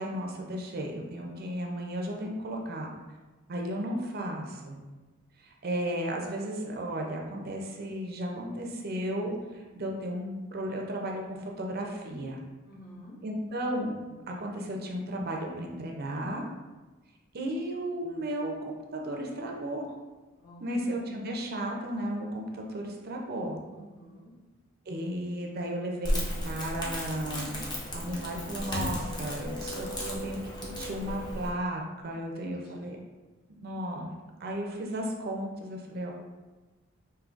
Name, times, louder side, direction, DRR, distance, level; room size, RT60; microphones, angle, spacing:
voice 1, 0.0-2.9 3.5-4.8 5.4-12.4 13.2-16.4 17.3-19.9 20.6-23.6 24.9-26.2 26.4-27.6 27.9-33.0 33.6-36.1, right 1 dB, 50° right, 1 dB, 0.5 m, -34 dB
voice 2, 12.7-13.2 20.4-21.2 23.7-24.3 32.3-32.7, equal, 45° left, -5 dB, 1.1 m, -50 dB
Crackle, 26.0-31.5, equal, 20° left, 0.7 m, -34 dB
5.1 x 2.7 x 2.5 m, 1.2 s
head